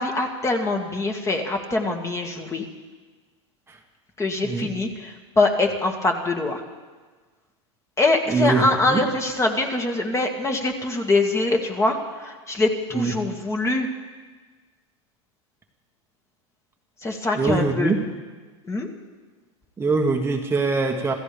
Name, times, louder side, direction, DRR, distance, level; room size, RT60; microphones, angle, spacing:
voice 1, 0.0-2.7 4.2-6.6 8.0-13.9 17.0-18.0 18.6-18.9, left 2 dB, 20° left, 2 dB, 2.1 m, -23 dB
voice 2, 8.3-9.0 12.9-13.1 17.4-17.9 19.8-21.1, right 4 dB, 15° right, 2 dB, 1.4 m, -23 dB
26.5 x 15.0 x 3.5 m, 1.4 s
hypercardioid pair, 105°, 16 cm